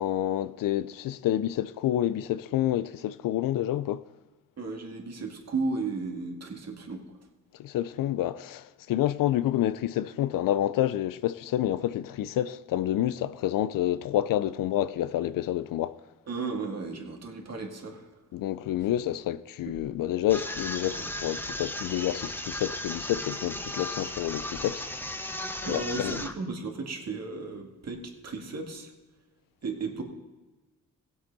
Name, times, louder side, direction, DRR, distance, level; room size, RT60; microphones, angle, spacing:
voice 1, 0.0-4.0 7.6-16.0 18.3-24.9 25.6-26.2, left 12 dB, 80° left, 0.5 m, -28 dB
voice 2, 4.6-7.0 16.3-18.1 19.7-19.9 25.6-28.9 29.6-30.0, right 3 dB, 50° right, 2.2 m, -34 dB
sound 1, 20.3-26.3, left 1 dB, 5° left, 0.9 m, -36 dB
17.5 x 8.0 x 4.1 m
cardioid pair, 70°, 33 cm